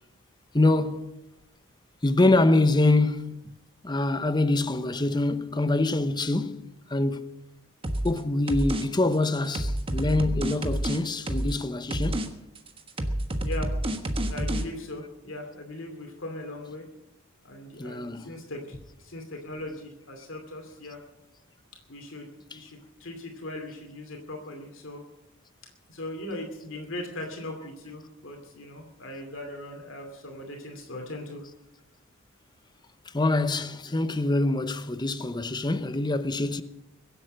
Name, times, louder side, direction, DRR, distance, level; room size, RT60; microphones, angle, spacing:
voice 1, 0.5-1.2 2.0-3.5 3.8-7.3 8.0-12.3 17.8-18.4 22.5-22.6 33.1-36.6, left 2 dB, 20° left, 0.8 m, -25 dB
sound 1, 7.8-8.2 8.5-8.8 9.1-11.6 11.9-12.3 12.6-14.6, right 1 dB, 25° right, 1.3 m, -28 dB
voice 2, 14.3-16.9 17.4-21.0 21.9-25.0 25.9-31.5, left 1 dB, 65° left, 2.7 m, -39 dB
22.5 x 8.1 x 7.6 m
head